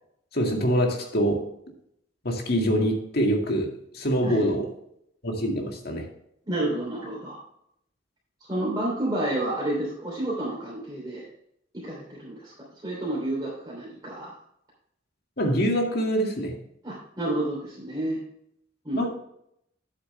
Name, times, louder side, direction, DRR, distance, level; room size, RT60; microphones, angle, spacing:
voice 1, 0.3-1.5 2.2-4.7 5.2-6.1 15.4-16.6 18.9-19.1, equal, 60° left, 2 dB, 2.0 m, -25 dB
voice 2, 6.4-7.4 8.5-11.3 11.7-12.5 12.8-14.3 16.8-18.2 18.8-19.1, right 1 dB, 25° right, -6 dB, 2.9 m, -30 dB
10.5 x 8.0 x 3.3 m, 0.74 s
head